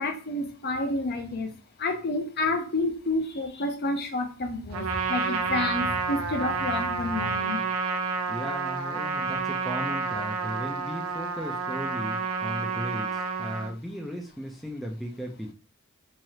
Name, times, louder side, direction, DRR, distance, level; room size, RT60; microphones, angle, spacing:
voice 1, 0.0-1.5 1.8-7.6, left 2 dB, 45° left, 4 dB, 0.6 m, -29 dB
Trumpet, 4.7-13.7, right 5 dB, 75° right, 0.5 m, -30 dB
voice 2, 8.3-15.5, equal, ahead, 0 dB, 0.4 m, -36 dB
3.1 x 2.4 x 2.8 m, 0.38 s
head